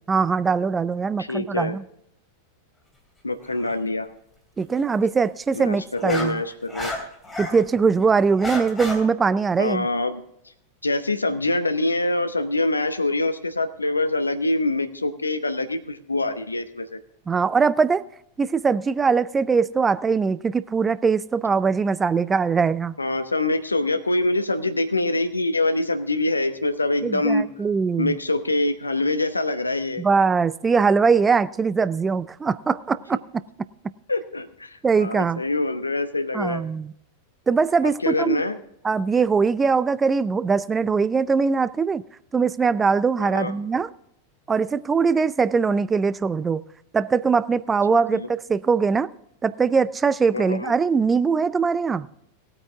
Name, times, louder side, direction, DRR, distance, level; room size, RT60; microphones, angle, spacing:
voice 1, 0.1-1.8 4.6-6.4 7.4-9.9 17.3-18.0 18.4-23.0 27.0-28.2 30.0-33.2 34.8-35.4 36.3-36.9 37.5-38.4 38.8-42.0 42.3-43.9 44.5-46.6 46.9-49.1 49.4-52.1, right 5 dB, 15° right, 17 dB, 0.4 m, -21 dB
voice 2, 1.2-1.8 3.2-4.1 5.5-6.9 9.6-10.2 10.8-17.0 23.0-27.5 28.0-30.0 34.1-36.6 37.8-38.6 43.2-43.5 47.9-48.3 50.3-50.7, left 2 dB, 80° left, 10 dB, 0.9 m, -25 dB
sound 1, 3.4-3.7 5.5-7.6 8.0-9.0, left 2 dB, 10° left, 2.9 m, -32 dB
18.0 x 8.9 x 3.5 m, 0.77 s
figure-of-eight pair, 90°, 0 cm